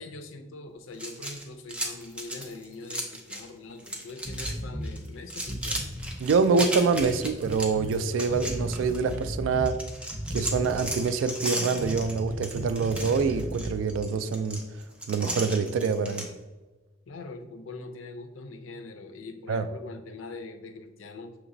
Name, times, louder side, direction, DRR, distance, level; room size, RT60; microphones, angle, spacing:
voice 1, 0.0-5.9 17.1-21.4, left 3 dB, 80° left, 0.5 m, -42 dB
sound 1, 0.9-3.5 3.8-4.5 4.8-9.3 9.7-16.3, right 1 dB, 5° right, 0.5 m, -35 dB
sound 2, 4.2-4.9 5.4-6.2 7.0-8.0 8.3-9.7 10.1-11.1 11.8-13.8, equal, 25° left, 1.2 m, -36 dB
voice 2, 6.2-9.8 10.3-14.6 15.1-16.3 19.5-19.7, right 5 dB, 75° right, 0.3 m, -25 dB
6.0 x 2.9 x 2.6 m
head